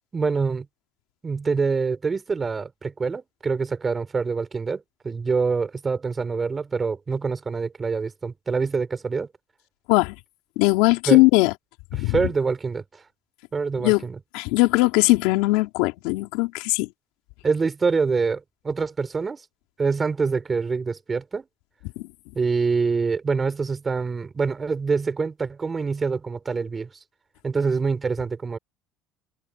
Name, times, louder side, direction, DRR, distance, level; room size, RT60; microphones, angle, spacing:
voice 1, 0.1-0.7 1.2-9.3 11.1-11.2 11.9-12.8 13.5-14.2 17.4-19.4 19.8-21.4 22.3-26.9 27.4-28.6, right 4 dB, 25° right, 4.1 m, -25 dB
voice 2, 10.6-11.5 11.9-12.2 13.8-14.0 14.3-16.9 22.0-22.1, left 23 dB, 85° left, 4.2 m, -19 dB
open air
supercardioid pair, 100°, 0 cm